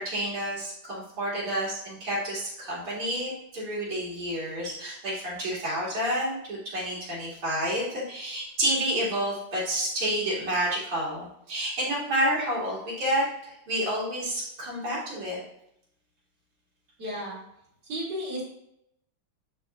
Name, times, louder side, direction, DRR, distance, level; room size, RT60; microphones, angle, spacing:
voice 1, 0.0-15.4, equal, 80° right, -7 dB, 3.7 m, -29 dB
voice 2, 17.0-17.4 17.8-18.4, equal, 50° right, -7 dB, 3.5 m, -33 dB
11.5 x 4.5 x 2.5 m, 0.77 s
omnidirectional pair, 2.4 m